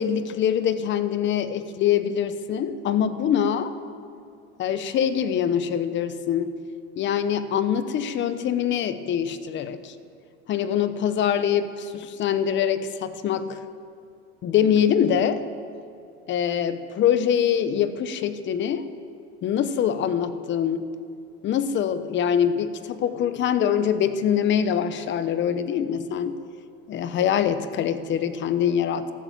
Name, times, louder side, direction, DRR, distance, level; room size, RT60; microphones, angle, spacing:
voice 1, 0.0-3.7 4.6-6.5 7.0-9.9 10.5-13.6 14.4-15.4 16.3-18.9 19.4-20.9 21.4-26.4 26.9-29.1, left 8 dB, 40° left, 12 dB, 1.0 m, -24 dB
14.0 x 13.5 x 7.5 m, 2.5 s
supercardioid pair, 130°, 30 cm